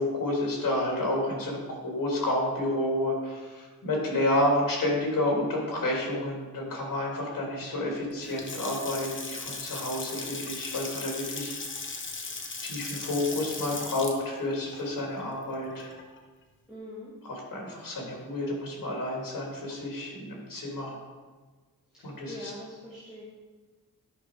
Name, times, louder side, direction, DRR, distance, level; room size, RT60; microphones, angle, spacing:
voice 1, 0.0-11.5 12.6-15.9 17.2-21.0 22.0-22.5, left 1 dB, 70° left, -2 dB, 3.3 m, -30 dB
Water tap faucet / Sink (filling or washing) / Splash splatter, 8.1-16.2, left 3 dB, 35° left, 1.1 m, -38 dB
voice 2, 16.7-17.1 21.9-23.2, left 1 dB, ahead, -11 dB, 2.6 m, -43 dB
11.5 x 5.8 x 4.9 m, 1.4 s
wide cardioid pair, 165°, 34 cm